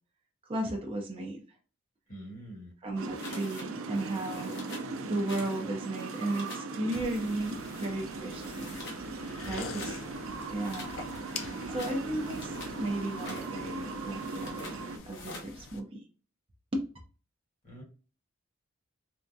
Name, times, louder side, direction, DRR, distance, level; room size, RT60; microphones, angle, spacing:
voice 1, 0.4-1.4 2.8-4.6 5.0-8.7 9.5-10.0 10.5-11.0 11.7-14.6 15.1-16.0 16.7-16.8, right 1 dB, 25° right, 1 dB, 0.5 m, -34 dB
voice 2, 2.1-2.7 9.4-9.9 11.3-11.8 17.6-17.8, right 1 dB, 40° left, -2 dB, 1.3 m, -46 dB
sound 1, 3.0-15.0, right 3 dB, 75° right, 0.5 m, -39 dB
sound 2, 3.2-3.7 3.9-4.9 5.3-5.6 5.9-6.7 7.1-7.9 8.3-9.0 9.4-10.0 10.6-12.8 13.1-13.5 14.2-14.8 15.1-15.5, left 2 dB, 55° left, 0.9 m, -46 dB
sound 3, 6.9-15.8, left 4 dB, 70° left, 0.4 m, -46 dB
3.4 x 2.2 x 2.6 m, 0.38 s
head